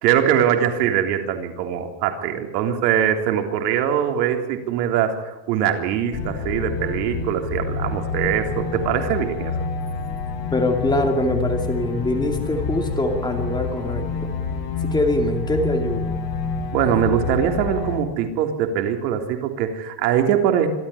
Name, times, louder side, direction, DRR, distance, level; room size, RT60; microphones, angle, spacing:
voice 1, 0.0-9.5 16.7-20.7, right 9 dB, 80° right, 5 dB, 3.7 m, -22 dB
sound 1, 6.1-18.0, left 4 dB, 70° left, 8.0 m, -28 dB
voice 2, 10.5-14.3 14.8-16.1, left 2 dB, 10° left, 3 dB, 2.5 m, -23 dB
25.5 x 13.0 x 9.9 m, 0.98 s
cardioid pair, 160°, 48 cm